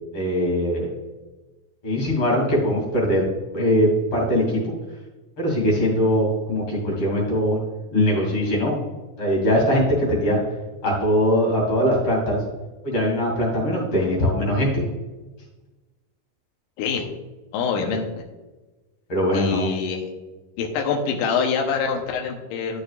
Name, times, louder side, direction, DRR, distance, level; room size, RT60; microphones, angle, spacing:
voice 1, 0.1-0.9 1.8-3.2 3.5-4.7 5.4-7.6 7.9-8.8 9.2-10.4 10.8-12.4 12.8-14.9 17.8-17.9 19.1-19.7, equal, 40° left, -3 dB, 3.3 m, -21 dB
voice 2, 17.5-18.0 19.3-20.0 20.6-22.8, left 5 dB, 75° left, 2 dB, 2.4 m, -25 dB
13.0 x 6.6 x 2.4 m, 1.2 s
omnidirectional pair, 3.9 m